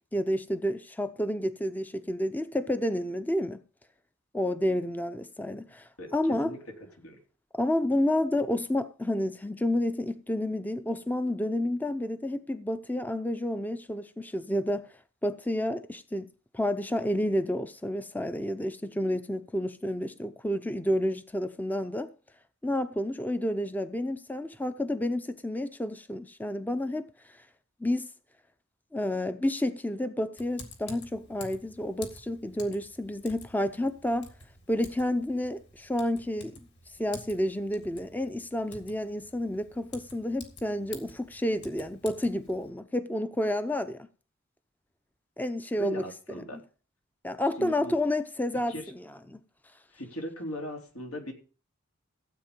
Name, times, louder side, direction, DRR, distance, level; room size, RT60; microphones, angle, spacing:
voice 1, 0.1-3.6 4.3-6.5 7.5-14.9 15.2-22.1 22.6-27.4 27.8-28.1 28.9-34.3 34.7-36.5 37.0-44.1 45.4-46.0 46.4-46.6 47.2-49.0 49.3-49.4, left 1 dB, 10° left, 0.6 m, -30 dB
Typing, 30.4-42.7, left 3 dB, 55° left, 3.2 m, -50 dB
voice 2, 45.8-46.6 47.6-47.9 48.7-48.8 49.9-51.3, equal, 85° left, 3.9 m, -38 dB
15.5 x 8.2 x 5.2 m
head